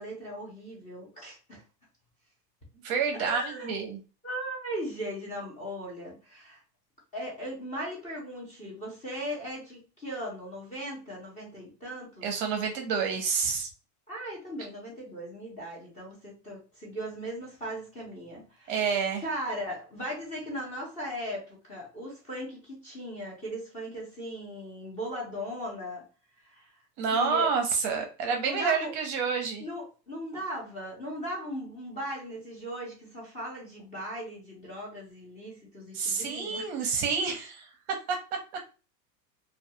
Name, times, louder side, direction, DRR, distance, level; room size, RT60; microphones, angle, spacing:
voice 1, 0.0-1.6 3.2-3.7 4.2-6.6 7.1-12.3 14.1-18.9 19.2-26.0 26.4-26.7 27.1-27.5 28.4-28.9 29.6-36.7, equal, 15° left, -3 dB, 0.5 m, -38 dB
voice 2, 2.8-4.0 12.2-13.7 18.7-19.2 27.0-29.6 35.9-38.2, right 5 dB, 40° right, 4 dB, 0.6 m, -28 dB
2.3 x 2.2 x 2.7 m, 0.33 s
supercardioid pair, 155°, 50 cm